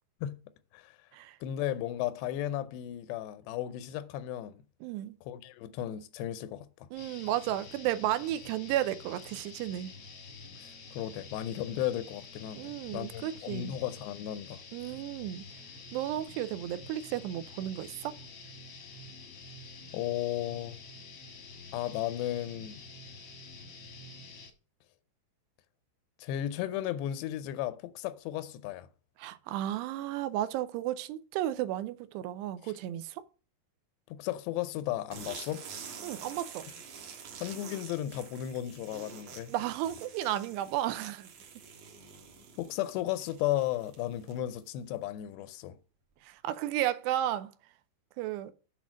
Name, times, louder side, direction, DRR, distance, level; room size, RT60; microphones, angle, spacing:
voice 1, 1.4-4.6 5.3-6.9 10.6-14.6 19.9-20.8 21.7-22.8 26.2-28.9 34.1-35.7 37.4-39.5 42.6-45.8, left 12 dB, 85° left, 2.8 m, -35 dB
voice 2, 4.8-5.2 6.9-9.9 12.5-13.7 14.7-15.5 15.9-18.2 29.2-33.2 36.0-36.7 39.5-41.3 46.2-47.5 48.2-48.5, right 13 dB, 90° right, 2.8 m, -33 dB
sound 1, 6.9-24.5, left 3 dB, 65° left, 1.5 m, -48 dB
sound 2, 35.1-44.6, right 6 dB, 60° right, 2.1 m, -47 dB
8.1 x 4.2 x 6.1 m
omnidirectional pair, 4.8 m